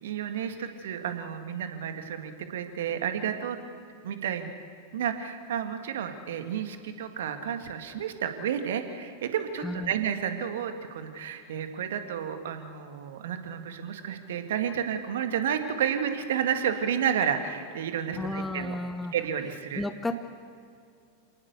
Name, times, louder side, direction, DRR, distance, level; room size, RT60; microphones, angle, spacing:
voice 1, 0.0-3.6 4.0-4.5 4.9-18.8 19.1-19.8, right 8 dB, 60° right, 7 dB, 2.0 m, -31 dB
voice 2, 9.6-9.9 18.2-19.1 19.7-20.1, left 2 dB, 10° left, 8 dB, 1.0 m, -32 dB
28.5 x 18.5 x 6.9 m, 2.3 s
figure-of-eight pair, 90°, 0 cm